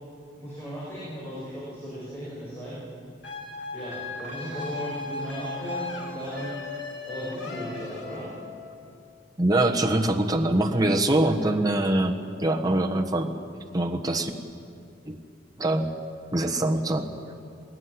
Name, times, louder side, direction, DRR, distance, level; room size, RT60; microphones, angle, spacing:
voice 1, 0.4-2.8 3.7-6.5 7.0-8.3, equal, 15° left, -9 dB, 7.4 m, -36 dB
sound 1, 3.2-8.7, left 3 dB, 70° left, 2.9 m, -37 dB
voice 2, 9.4-13.3 13.7-14.3 15.1-15.2 15.6-15.9 16.3-17.1, right 1 dB, 20° right, 2 dB, 1.3 m, -23 dB
20.5 x 18.0 x 9.7 m, 2.4 s
head